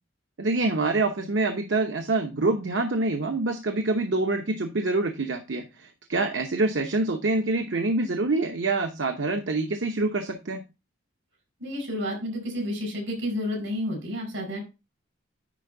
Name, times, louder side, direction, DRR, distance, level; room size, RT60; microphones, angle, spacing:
voice 1, 0.4-10.6, right 2 dB, 65° right, 5 dB, 0.8 m, -26 dB
voice 2, 11.6-14.6, left 1 dB, 85° right, 1 dB, 5.1 m, -30 dB
10.0 x 4.3 x 3.8 m, 0.27 s
head